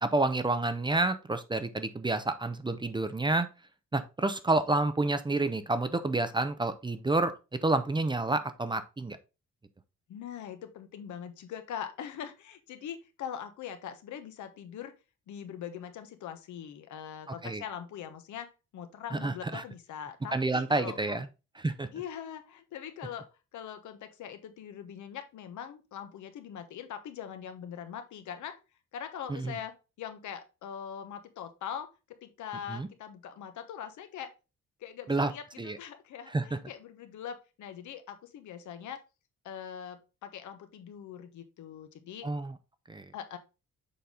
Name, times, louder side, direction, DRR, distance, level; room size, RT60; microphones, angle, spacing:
voice 1, 0.0-3.5 3.9-7.3 7.6-9.2 17.4-17.6 19.1-19.6 20.3-21.3 21.6-21.9 29.3-29.5 32.7-32.9 35.1-35.3 35.6-35.8 36.3-36.6 42.2-42.5 42.9-43.0, right 2 dB, 15° right, 11 dB, 0.6 m, -29 dB
voice 2, 10.1-14.9 15.3-21.2 21.9-28.6 28.9-31.9 32.2-34.3 34.8-39.0 39.4-42.3 43.1-43.4, left 9 dB, 75° left, 8 dB, 1.1 m, -42 dB
6.9 x 4.0 x 3.7 m, 0.29 s
cardioid pair, 90°, 30 cm